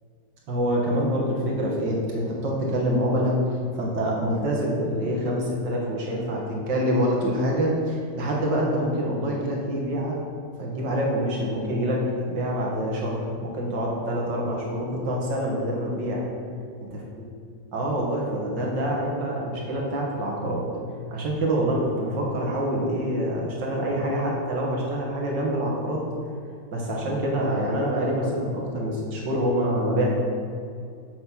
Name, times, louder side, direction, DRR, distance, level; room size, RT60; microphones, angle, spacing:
voice 1, 0.5-10.2 10.6-16.2 16.8-17.0 17.7-20.6 21.1-26.1 26.7-30.1, equal, 90° right, -2 dB, 2.4 m, -26 dB
7.8 x 7.6 x 5.6 m, 2.4 s
omnidirectional pair, 1.9 m